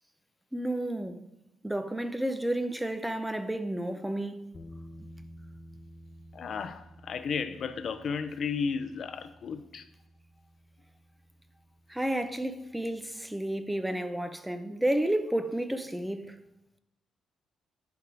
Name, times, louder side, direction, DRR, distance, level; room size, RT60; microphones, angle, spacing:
voice 1, 0.5-1.2 1.6-4.5 11.9-16.4, right 1 dB, 5° right, 0.6 m, -31 dB
sound 1, 4.5-13.5, equal, 30° left, 0.9 m, -52 dB
voice 2, 6.3-9.8, left 5 dB, 55° left, 0.6 m, -34 dB
10.5 x 3.6 x 4.8 m
cardioid pair, 90°, 0 cm